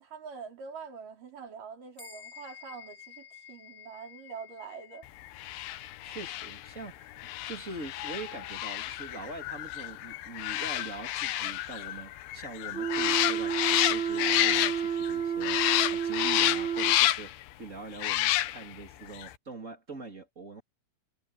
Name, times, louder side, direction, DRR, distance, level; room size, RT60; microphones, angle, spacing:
voice 1, 0.0-5.1, right 5 dB, 40° right, 5.7 m, -44 dB
sound 1, 2.0-11.7, left 8 dB, 10° left, 7.1 m, -54 dB
sound 2, 5.3-15.1 15.4-17.4 17.9-18.8 19.1-19.3, left 14 dB, 80° left, 2.3 m, -30 dB
voice 2, 6.0-7.1 7.4-17.3 17.6-20.6, right 3 dB, 25° right, 2.0 m, -43 dB
sound 3, 12.7-17.0, right 8 dB, 40° left, 0.8 m, -31 dB
omnidirectional pair, 5.9 m